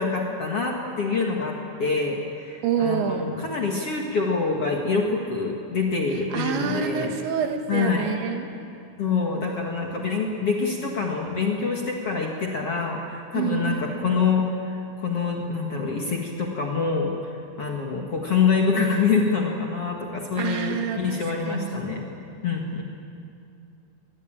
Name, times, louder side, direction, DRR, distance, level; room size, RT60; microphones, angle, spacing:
voice 1, 0.0-7.1 7.7-8.1 9.0-14.7 15.0-22.0 22.4-22.8, left 5 dB, 50° left, 0 dB, 2.0 m, -26 dB
voice 2, 2.6-3.3 6.3-8.5 13.3-14.2 20.4-21.8, right 7 dB, 90° right, 4 dB, 4.1 m, -27 dB
24.0 x 19.5 x 8.9 m, 2.5 s
omnidirectional pair, 5.0 m